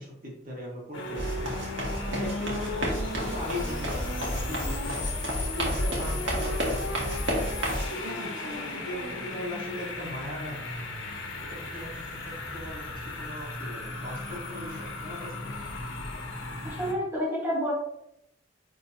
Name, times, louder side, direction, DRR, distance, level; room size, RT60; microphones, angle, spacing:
voice 1, 0.0-1.5 2.1-5.3 5.6-7.3 7.9-10.6 11.7-15.8, equal, 45° right, -3 dB, 1.9 m, -39 dB
sound 1, 0.9-16.9, left 2 dB, 75° left, 1.2 m, -36 dB
sound 2, 1.2-7.9, equal, 70° right, 1.7 m, -31 dB
voice 2, 16.6-17.7, equal, 15° right, -7 dB, 1.7 m, -29 dB
9.4 x 3.7 x 2.8 m, 0.78 s
head